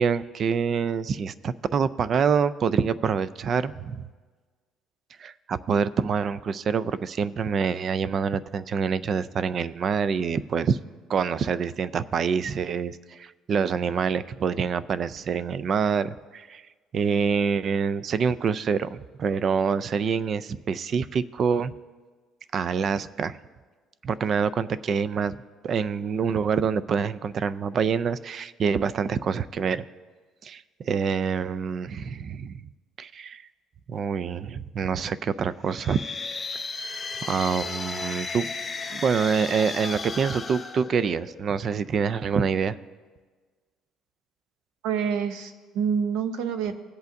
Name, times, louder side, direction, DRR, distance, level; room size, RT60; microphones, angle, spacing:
voice 1, 0.0-4.1 5.2-10.8 11.1-16.6 16.9-21.7 22.5-23.4 24.0-25.4 25.6-29.8 30.4-32.6 33.0-33.4 33.9-36.0 36.5-36.6 37.2-38.5 38.9-42.8, right 6 dB, 40° right, 16 dB, 0.3 m, -26 dB
sound 1, 35.6-41.5, left 4 dB, 20° left, 0.7 m, -35 dB
voice 2, 44.8-46.8, right 7 dB, 85° right, 9 dB, 0.8 m, -27 dB
18.0 x 8.1 x 2.6 m, 1.4 s
cardioid pair, 130°, 0 cm